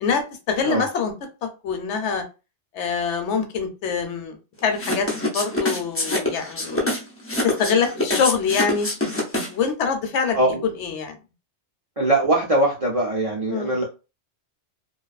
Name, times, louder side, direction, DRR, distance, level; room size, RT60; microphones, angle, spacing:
voice 1, 0.5-1.1 1.4-2.2 2.7-4.4 4.6-6.9 7.4-8.9 9.5-10.4 10.8-11.2 13.5-13.8, left 6 dB, 75° left, 6 dB, 0.9 m, -24 dB
sound 1, 4.8-9.7, left 1 dB, 20° left, 0.3 m, -25 dB
voice 2, 12.0-13.8, right 1 dB, 55° right, -1 dB, 0.4 m, -21 dB
2.5 x 2.3 x 2.3 m, 0.30 s
omnidirectional pair, 1.2 m